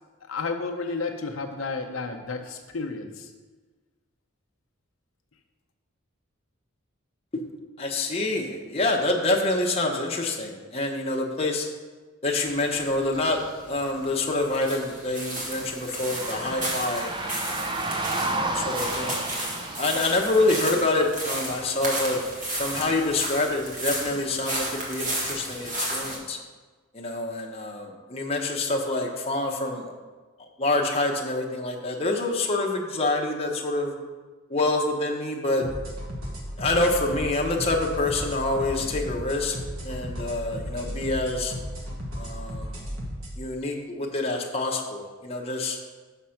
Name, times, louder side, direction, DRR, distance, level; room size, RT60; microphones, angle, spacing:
voice 1, 0.3-3.3, left 4 dB, 80° left, 3 dB, 0.7 m, -32 dB
voice 2, 7.8-11.7 12.2-13.4 13.7-17.8 18.2-19.2 19.8-22.2 22.5-26.4 26.9-29.9 30.6-33.9 34.5-35.7 36.6-39.6 39.8-41.5 42.1-42.8 43.4-45.8, left 2 dB, 30° left, 0 dB, 0.8 m, -26 dB
sound 1, 12.5-26.2, right 1 dB, 40° right, 1.6 m, -33 dB
sound 2, 16.0-21.1, right 2 dB, 20° right, 0.5 m, -32 dB
sound 3, 35.6-43.4, equal, 85° right, 1.6 m, -35 dB
6.4 x 5.2 x 5.7 m, 1.4 s
head